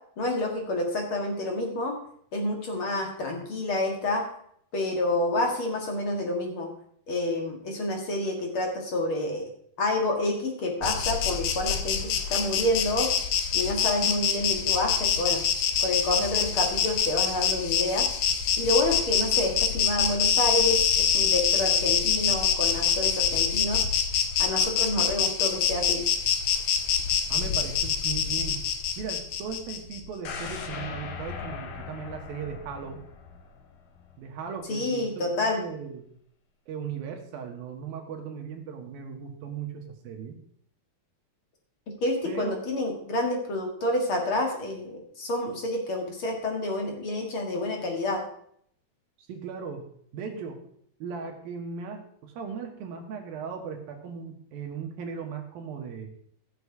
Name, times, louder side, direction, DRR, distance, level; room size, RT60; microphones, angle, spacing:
voice 1, 0.2-2.0 2.3-4.3 4.7-6.7 7.1-9.4 9.8-13.1 13.5-15.4 15.8-18.1 18.6-23.8 24.4-26.0 34.7-35.6 41.9-48.2, left 1 dB, 45° left, 2 dB, 2.0 m, -28 dB
Insect, 10.8-30.0, left 7 dB, 85° left, 1.5 m, -25 dB
voice 2, 27.3-28.6 29.0-33.0 34.2-36.1 36.7-40.4 42.2-42.6 49.2-50.6 51.0-56.1, right 6 dB, 70° right, 4 dB, 2.8 m, -37 dB
sound 1, 30.3-34.2 34.6-34.7, left 6 dB, 70° left, 2.9 m, -39 dB
15.0 x 6.8 x 4.7 m, 0.65 s
omnidirectional pair, 4.6 m